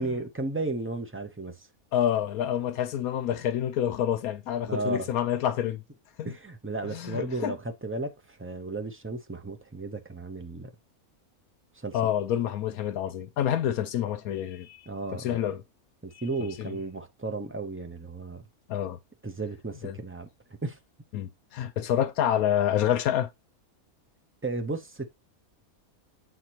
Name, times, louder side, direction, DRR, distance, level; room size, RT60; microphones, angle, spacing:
voice 1, 0.0-1.7 4.7-5.1 6.2-10.7 11.8-12.0 14.9-15.4 16.0-18.4 19.2-20.3 20.6-20.8 24.4-25.1, right 3 dB, 15° right, 0.4 m, -34 dB
voice 2, 1.9-5.8 6.2-6.3 6.9-7.6 11.9-15.6 16.1-16.7 18.7-19.0 19.8-20.0 21.1-23.3, left 10 dB, 80° left, 1.1 m, -28 dB
7.9 x 4.3 x 2.9 m
omnidirectional pair, 1.5 m